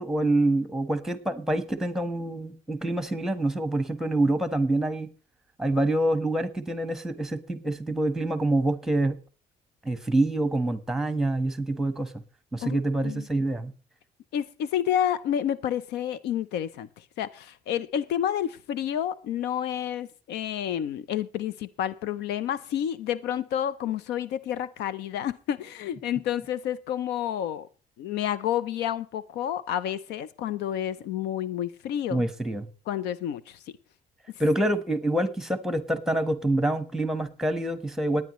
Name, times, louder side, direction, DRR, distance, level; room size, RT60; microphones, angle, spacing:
voice 1, 0.0-5.1 5.6-9.2 9.8-12.1 12.5-13.7 32.1-32.7 34.4-38.2, right 1 dB, ahead, 1.3 m, -26 dB
voice 2, 12.6-13.3 14.3-16.9 17.2-27.7 28.0-32.2 32.9-33.6, left 10 dB, 85° left, 0.7 m, -29 dB
18.0 x 9.7 x 3.1 m
cardioid pair, 110°, 17 cm